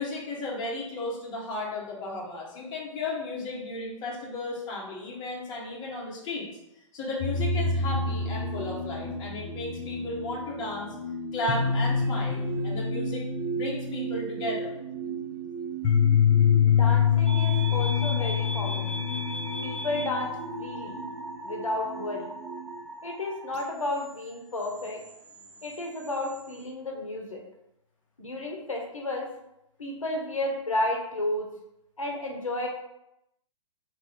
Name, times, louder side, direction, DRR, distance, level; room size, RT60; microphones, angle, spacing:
voice 1, 0.0-6.5 6.9-10.9 11.3-13.2 13.5-14.8, left 2 dB, 25° left, -3 dB, 1.2 m, -34 dB
sound 1, 7.2-22.8, left 6 dB, 55° left, 1.2 m, -27 dB
voice 2, 16.6-18.9 19.6-20.3 20.6-21.0 21.4-22.3 23.0-25.0 25.6-27.4 28.2-29.3 29.8-31.5 32.0-32.7, left 1 dB, 80° left, 1 dB, 0.8 m, -32 dB
sound 2, 17.3-26.6, right 1 dB, 55° right, 0.9 m, -40 dB
3.0 x 2.9 x 3.7 m, 0.84 s
figure-of-eight pair, 115°, 17 cm